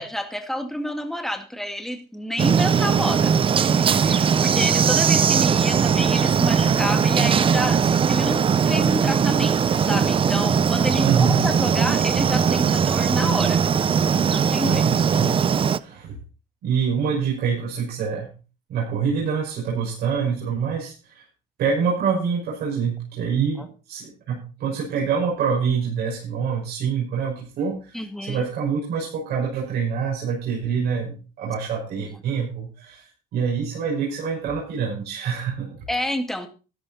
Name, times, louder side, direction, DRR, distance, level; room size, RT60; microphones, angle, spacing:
voice 1, 0.0-13.6 14.3-14.8 23.6-23.7 27.9-28.4 35.9-36.5, left 1 dB, ahead, 5 dB, 2.2 m, -29 dB
sound 1, 2.4-15.8, right 7 dB, 30° right, 0.5 m, -20 dB
voice 2, 11.0-11.4 14.6-15.4 15.8-16.2 16.6-18.3 18.7-21.2 21.6-33.1 33.3-35.7, right 6 dB, 70° right, -4 dB, 5.8 m, -26 dB
14.0 x 10.5 x 4.3 m, 0.35 s
cardioid pair, 110°, 17 cm